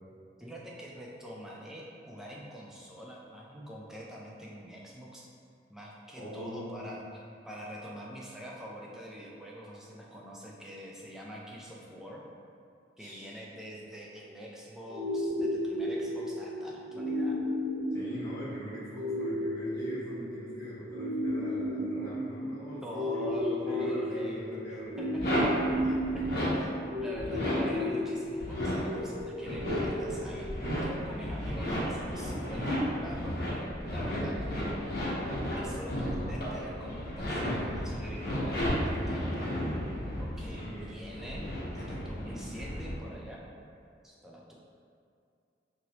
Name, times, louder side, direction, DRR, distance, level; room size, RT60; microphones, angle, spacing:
voice 1, 0.4-5.3 5.7-7.0 7.5-12.2 13.0-17.4 22.8-24.4 25.0-25.5 25.8-30.5 30.8-33.4 33.9-34.7 35.5-39.5 40.2-43.4 44.0-44.5, equal, 5° right, -4 dB, 0.3 m, -45 dB
voice 2, 6.1-7.1 13.0-13.4 17.9-25.3 26.1-26.4 40.4-40.8, equal, 15° left, -13 dB, 1.0 m, -43 dB
sound 1, 14.9-30.9, equal, 80° right, 1.2 m, -34 dB
sound 2, 25.2-26.5 26.9-27.6 28.3-42.9, equal, 60° left, 0.8 m, -33 dB
3.0 x 2.7 x 2.9 m, 2.4 s
head